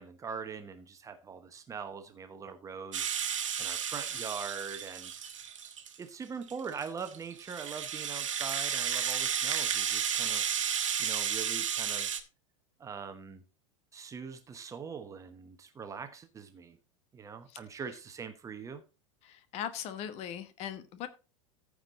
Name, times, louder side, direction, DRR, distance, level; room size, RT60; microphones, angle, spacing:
voice 1, 0.0-5.2 6.0-10.7 11.0-12.1 12.8-13.4 13.9-16.8 17.1-18.8, right 6 dB, 20° right, 1.2 m, -42 dB
Rattle (instrument), 2.9-6.0 6.5-12.2, right 8 dB, 70° right, 1.3 m, -33 dB
voice 2, 19.2-21.1, left 9 dB, 40° left, 1.2 m, -39 dB
14.5 x 4.9 x 4.0 m
figure-of-eight pair, 85°, 17 cm